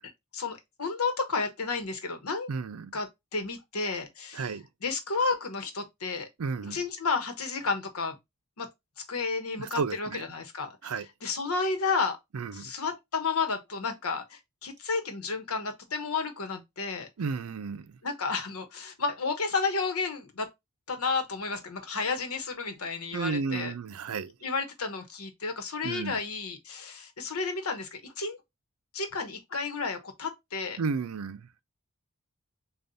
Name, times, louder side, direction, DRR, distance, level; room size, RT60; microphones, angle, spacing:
voice 1, 0.3-2.5 2.9-4.5 4.8-6.3 6.7-8.2 8.6-8.7 9.1-10.9 11.2-12.2 12.5-17.1 18.0-20.5 20.9-23.7 24.4-28.4 28.9-30.8, left 4 dB, 80° left, 1.1 m, -32 dB
voice 2, 2.5-2.9 4.3-4.6 6.4-6.8 9.6-10.2 10.8-11.1 12.3-12.7 17.2-18.0 23.1-24.3 25.8-26.2 30.8-31.5, right 5 dB, 80° right, 0.5 m, -33 dB
6.7 x 2.4 x 2.7 m
head